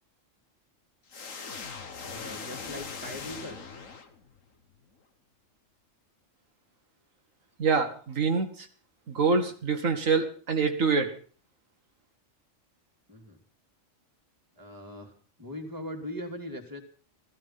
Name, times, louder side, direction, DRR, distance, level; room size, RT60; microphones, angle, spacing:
sound 1, 1.1-4.5, left 5 dB, 85° left, 1.9 m, -40 dB
voice 1, 2.0-3.7 13.1-13.4 14.6-15.1 15.4-16.8, left 1 dB, 15° right, 1 dB, 2.8 m, -40 dB
voice 2, 7.6-8.7 9.1-11.1, right 4 dB, 85° right, 5 dB, 2.0 m, -26 dB
17.0 x 14.5 x 5.7 m, 0.43 s
omnidirectional pair, 1.3 m